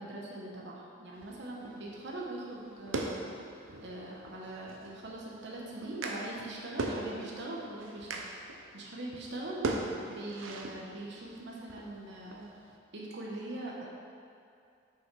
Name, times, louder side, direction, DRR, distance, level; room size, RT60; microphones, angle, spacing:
voice 1, 0.0-3.3 3.8-8.3 8.7-9.7 10.1-12.5 12.9-13.8, right 1 dB, 60° right, -3 dB, 1.0 m, -42 dB
sound 1, 1.1-12.8, right 2 dB, 85° right, 0.7 m, -41 dB
6.0 x 5.9 x 4.6 m, 2.5 s
head